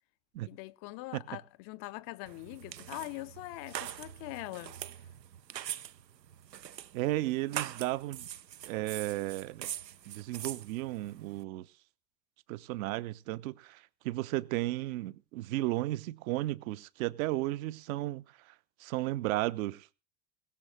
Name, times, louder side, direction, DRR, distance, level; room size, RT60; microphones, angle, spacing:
voice 1, 0.5-4.8, left 20 dB, 40° left, 0.7 m, -42 dB
sound 1, 2.3-11.4, right 11 dB, 80° right, 0.8 m, -43 dB
voice 2, 6.9-8.3 8.6-9.7 10.1-11.6 12.5-18.2 18.8-19.9, right 17 dB, 55° right, 1.0 m, -34 dB
20.0 x 7.0 x 6.5 m
figure-of-eight pair, 75°, 50 cm